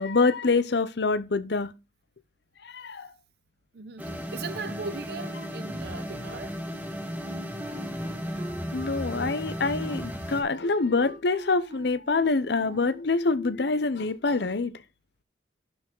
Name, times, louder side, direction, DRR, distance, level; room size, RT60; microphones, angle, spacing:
voice 1, 0.0-1.7 2.6-3.1 8.7-14.7, left 3 dB, 65° left, 0.7 m, -26 dB
voice 2, 3.7-6.6, right 4 dB, 60° right, 0.7 m, -38 dB
sound 1, 4.0-10.4, equal, 10° right, 1.7 m, -35 dB
Wind instrument woodwind instrument, 7.2-13.1, right 1 dB, 30° right, 2.0 m, -44 dB
11.5 x 4.8 x 3.7 m
head